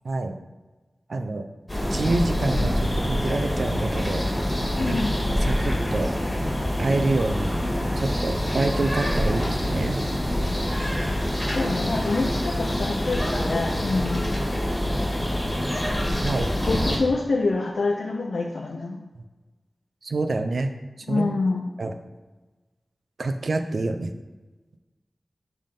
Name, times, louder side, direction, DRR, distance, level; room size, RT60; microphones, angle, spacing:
voice 1, 1.1-1.5 1.9-4.2 4.9-5.0 5.4-6.1 6.8-7.5 8.0-10.0 16.2-16.5 20.0-20.7 21.1-21.3 21.8-21.9 23.2-24.1, right 2 dB, 75° right, 7 dB, 0.6 m, -27 dB
sound 1, 1.7-17.0, left 1 dB, 15° left, 2.3 m, -25 dB
voice 2, 4.7-5.2 11.5-14.3 16.7-19.0 21.1-21.7, left 3 dB, 80° left, 1 dB, 0.6 m, -26 dB
7.6 x 3.5 x 5.3 m, 1.2 s
wide cardioid pair, 80°, 0 cm